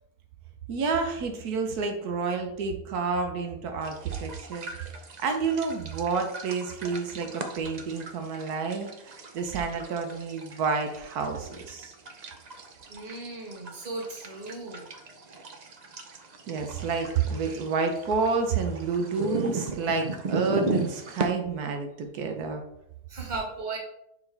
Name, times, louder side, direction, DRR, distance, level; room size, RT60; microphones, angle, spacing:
voice 1, 0.7-4.7 5.2-11.9 16.5-22.6, right 4 dB, 85° right, 4 dB, 1.3 m, -29 dB
sound 1, 3.8-21.3, right 3 dB, 55° right, 0.4 m, -37 dB
voice 2, 12.9-14.8 23.1-23.8, right 3 dB, 30° right, -1 dB, 1.5 m, -36 dB
6.7 x 4.8 x 3.3 m, 0.79 s
omnidirectional pair, 1.6 m